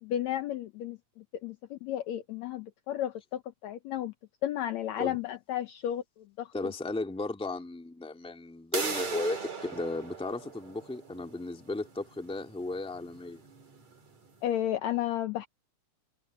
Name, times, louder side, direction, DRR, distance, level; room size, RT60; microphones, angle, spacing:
voice 1, 0.0-4.1 4.4-6.7 14.4-15.5, left 11 dB, 75° left, 1.6 m, -33 dB
voice 2, 6.5-13.4, left 2 dB, ahead, 1.8 m, -35 dB
sound 1, 8.7-14.3, right 5 dB, 45° right, 5.4 m, -40 dB
omnidirectional pair, 4.3 m